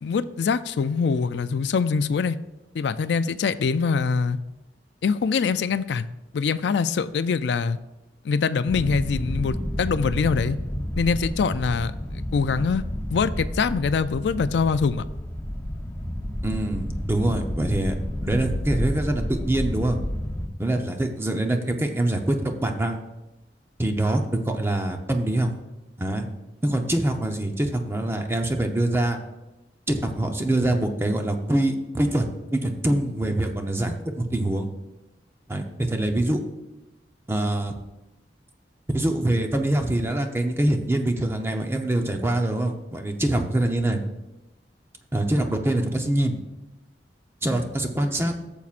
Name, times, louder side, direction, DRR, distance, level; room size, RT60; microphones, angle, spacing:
voice 1, 0.0-2.4 2.7-4.4 5.0-6.1 6.3-7.8 8.2-10.6 11.0-11.9 12.3-12.8 13.1-15.1, left 5 dB, 70° left, 13 dB, 0.4 m, -24 dB
sound 1, 8.7-20.5, equal, 15° left, 0.8 m, -30 dB
voice 2, 16.4-17.9 18.2-20.0 20.6-23.0 23.8-25.5 26.0-26.3 26.6-29.2 29.9-34.7 35.5-36.4 37.3-37.7 38.9-44.0 45.1-46.4 47.4-48.3, right 1 dB, 15° right, 4 dB, 0.7 m, -24 dB
13.5 x 7.1 x 2.5 m, 0.99 s
head